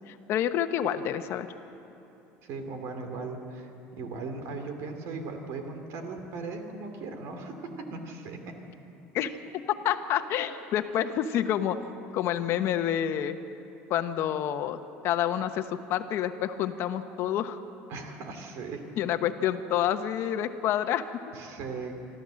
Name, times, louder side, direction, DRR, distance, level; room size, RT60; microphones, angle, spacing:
voice 1, 0.1-1.5 9.1-11.8 12.1-13.4 13.9-17.6 19.0-21.0, left 10 dB, 55° left, 9 dB, 1.0 m, -28 dB
voice 2, 2.4-7.5 7.9-8.4 17.9-18.8 21.3-21.9, right 4 dB, 65° right, 5 dB, 2.7 m, -38 dB
25.5 x 13.5 x 7.7 m, 2.9 s
cardioid pair, 140°, 5 cm